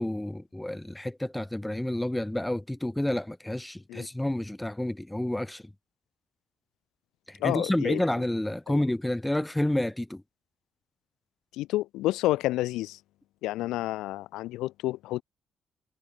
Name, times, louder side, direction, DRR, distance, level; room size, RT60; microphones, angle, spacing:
voice 1, 0.0-5.6 7.3-10.2, left 1 dB, 10° left, 3.3 m, -29 dB
voice 2, 7.4-8.0 8.7-8.8 11.5-13.0 13.4-15.2, left 16 dB, 85° left, 8.0 m, -29 dB
supercardioid pair, 55°, 0 cm